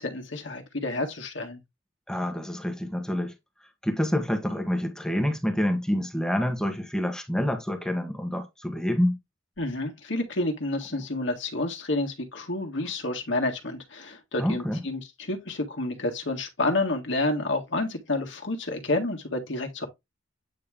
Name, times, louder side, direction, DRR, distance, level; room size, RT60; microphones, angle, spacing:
voice 1, 0.0-1.6 9.6-19.9, left 2 dB, 65° left, 1.7 m, -29 dB
voice 2, 2.1-3.3 3.8-9.2 14.4-14.8, equal, 5° left, 1.2 m, -27 dB
9.0 x 3.0 x 3.6 m
head